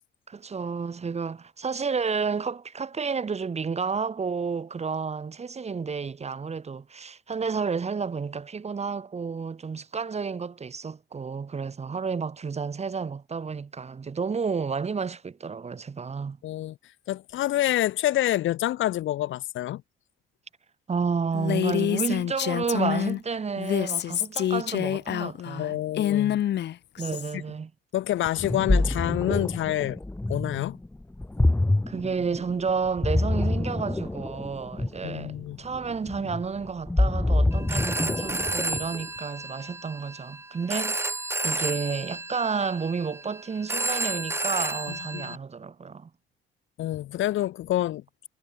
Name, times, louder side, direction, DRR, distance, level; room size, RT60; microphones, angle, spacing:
voice 1, 0.3-16.4 20.9-25.8 27.0-27.7 31.9-41.0 41.4-46.1, right 5 dB, 35° right, 1.5 m, -31 dB
voice 2, 16.4-16.7 17.1-19.8 25.6-26.4 27.3-27.4 27.9-30.0 30.3-30.8 35.0-35.6 45.1-45.4 46.8-48.0, left 13 dB, 80° left, 1.6 m, -27 dB
Female speech woman speaking, 21.3-23.2 23.6-27.3, left 11 dB, 60° left, 0.7 m, -27 dB
Ocean, 28.2-39.0, left 2 dB, 10° left, 1.3 m, -26 dB
Telephone, 37.5-45.4, right 2 dB, 15° right, 2.0 m, -32 dB
cardioid pair, 90°, 20 cm